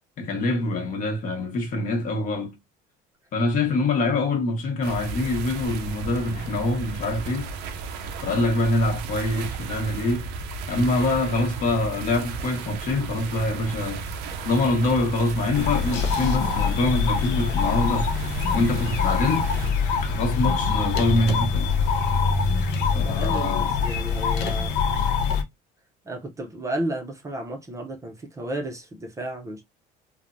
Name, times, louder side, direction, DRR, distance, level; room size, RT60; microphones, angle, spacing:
voice 1, 0.2-2.5 3.3-7.5 8.2-10.3 10.7-14.0 14.4-18.1 18.5-19.5 20.0-21.7 22.9-23.7, left 2 dB, 50° left, 1.0 m, -25 dB
sound 1, 4.8-19.7, right 4 dB, 80° right, 0.5 m, -34 dB
sound 2, 15.5-25.4, left 5 dB, 75° left, 0.7 m, -24 dB
voice 2, 23.0-24.7 26.0-29.6, right 1 dB, 20° right, 0.5 m, -33 dB
3.2 x 2.0 x 2.5 m
cardioid pair, 145°, 17 cm